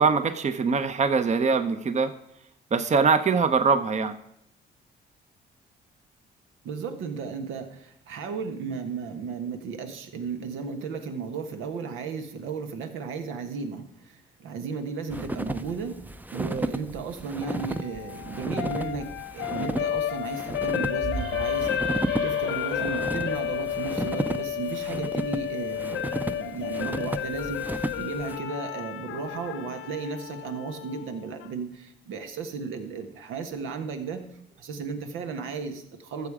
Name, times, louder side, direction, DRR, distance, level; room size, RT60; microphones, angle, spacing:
voice 1, 0.0-2.1 2.7-4.1, right 5 dB, 35° right, 10 dB, 0.8 m, -22 dB
voice 2, 6.6-16.0 16.3-34.3 34.6-36.3, right 5 dB, 90° right, 6 dB, 1.4 m, -35 dB
sound 1, 15.1-28.4, right 1 dB, 10° right, 0.6 m, -33 dB
sound 2, 17.4-31.5, left 10 dB, 75° left, 0.7 m, -32 dB
sound 3, 21.0-24.6, right 4 dB, 55° right, 2.1 m, -37 dB
14.0 x 7.1 x 4.9 m, 0.77 s
cardioid pair, 90°, 20 cm